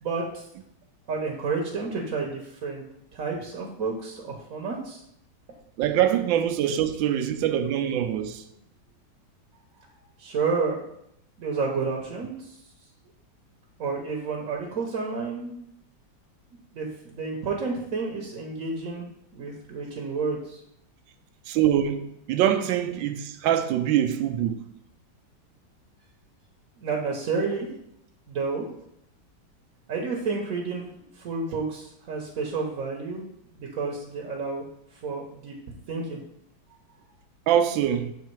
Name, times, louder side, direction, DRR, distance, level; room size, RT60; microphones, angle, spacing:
voice 1, 0.0-0.5 1.1-2.8 3.1-5.0 10.2-10.9 11.4-12.6 13.8-15.6 16.7-19.1 19.3-20.6 26.8-27.7 28.3-28.7 29.9-33.2 33.5-34.6 34.9-35.6 35.9-36.2, right 4 dB, 55° right, 1.1 m, -30 dB
voice 2, 5.8-8.4 21.5-24.6 37.5-38.1, right 10 dB, 85° right, 1.3 m, -24 dB
7.3 x 3.4 x 4.5 m
omnidirectional pair, 2.0 m